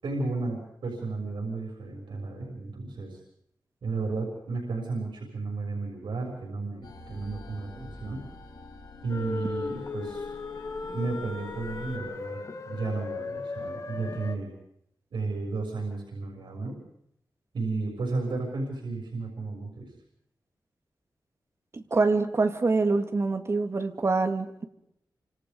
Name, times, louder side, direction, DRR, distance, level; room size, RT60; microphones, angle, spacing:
voice 1, 0.0-3.2 3.8-8.3 9.0-10.2 10.9-12.4 12.6-14.5 15.1-16.8 17.5-19.9, right 3 dB, 85° right, 0 dB, 6.8 m, -33 dB
sound 1, 6.8-12.0, left 3 dB, 65° left, 7.2 m, -46 dB
sound 2, 9.1-14.4, left 3 dB, 45° left, 1.8 m, -36 dB
voice 2, 21.7-24.6, right 3 dB, 35° right, 6 dB, 2.3 m, -25 dB
29.0 x 27.0 x 5.5 m, 0.74 s
wide cardioid pair, 170°, 8 cm